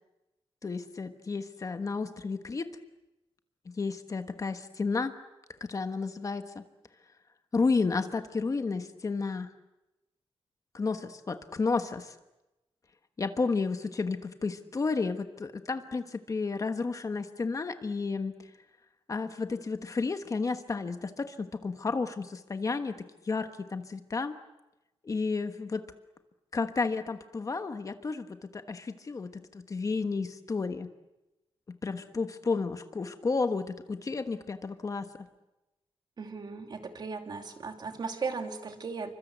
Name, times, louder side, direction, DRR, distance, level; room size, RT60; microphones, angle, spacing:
voice 1, 0.6-2.7 3.6-5.1 5.6-6.6 7.5-9.5 10.7-12.1 13.2-18.3 19.1-23.0 23.2-24.3 25.0-25.8 26.5-30.9 31.7-35.1, left 4 dB, 35° left, 8 dB, 1.3 m, -32 dB
voice 2, 36.2-39.1, right 4 dB, 45° right, 5 dB, 2.6 m, -37 dB
28.5 x 25.0 x 8.1 m, 1.0 s
wide cardioid pair, 170°, 10 cm